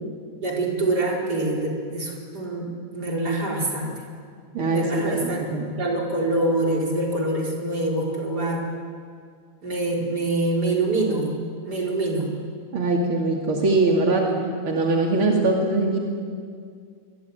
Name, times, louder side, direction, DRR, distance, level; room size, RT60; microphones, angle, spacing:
voice 1, 0.4-2.7 2.9-3.9 4.7-5.4 5.8-8.6 9.6-12.3, right 2 dB, 50° right, -2 dB, 4.9 m, -25 dB
voice 2, 4.5-5.7 12.7-14.3 14.6-16.0, right 2 dB, 80° right, -1 dB, 3.4 m, -22 dB
25.0 x 22.5 x 9.4 m, 2.1 s
omnidirectional pair, 2.3 m